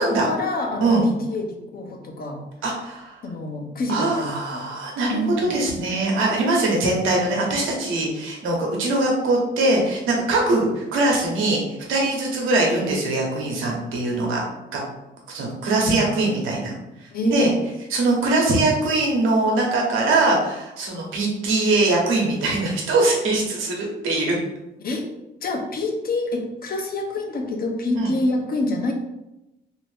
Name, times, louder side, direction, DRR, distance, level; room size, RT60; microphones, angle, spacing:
voice 1, 0.0-2.5 3.2-4.7 5.1-5.6 17.1-17.5 24.8-25.1 25.4-28.9, left 2 dB, 50° left, 2 dB, 0.7 m, -27 dB
voice 2, 2.6-3.2 3.9-11.6 11.9-14.4 14.7-14.8 15.3-16.7 17.0-17.5 17.9-24.4 28.0-28.1, right 2 dB, 85° right, -1 dB, 1.0 m, -22 dB
2.8 x 2.6 x 3.3 m, 0.94 s
cardioid pair, 90°, 20 cm